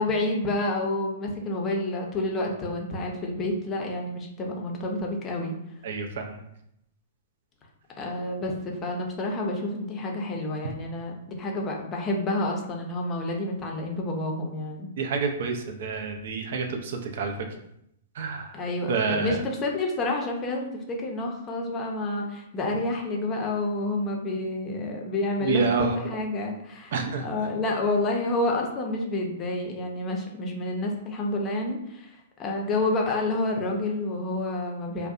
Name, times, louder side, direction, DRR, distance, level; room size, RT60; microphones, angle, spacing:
voice 1, 0.0-5.6 8.0-14.9 18.5-35.1, left 2 dB, 25° left, 1 dB, 0.5 m, -29 dB
voice 2, 5.8-6.4 15.0-17.3 18.2-18.5 18.9-19.4 25.4-26.0 26.9-27.2, right 4 dB, 65° right, 4 dB, 0.4 m, -28 dB
2.5 x 2.1 x 2.4 m, 0.77 s
hypercardioid pair, 120°, 0 cm